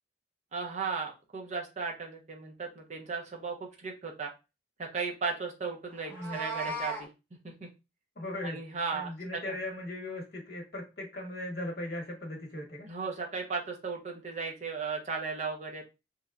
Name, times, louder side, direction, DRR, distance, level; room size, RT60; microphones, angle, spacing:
voice 1, 0.5-4.3 4.8-7.1 7.4-7.7 8.4-9.5 12.9-15.8, right 4 dB, 40° right, 0 dB, 0.5 m, -36 dB
Meow, 6.0-7.1, right 2 dB, 10° left, 0.5 m, -36 dB
voice 2, 8.1-8.6 8.9-12.9, left 1 dB, 55° left, -1 dB, 1.0 m, -38 dB
2.8 x 2.1 x 2.3 m, 0.27 s
head